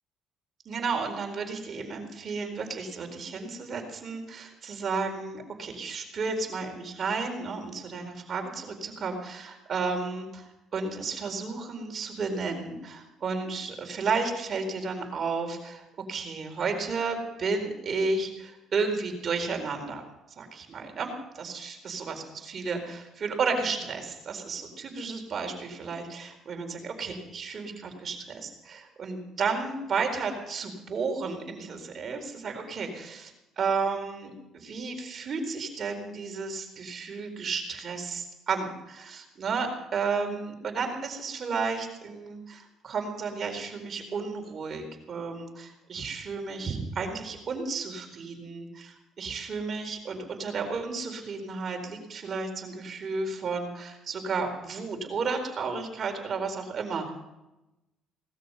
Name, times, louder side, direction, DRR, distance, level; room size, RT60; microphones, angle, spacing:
voice 1, 0.6-20.0 20.4-57.1, right 4 dB, 45° right, 4 dB, 4.2 m, -32 dB
19.0 x 13.0 x 5.5 m, 0.94 s
supercardioid pair, 85°, 0 cm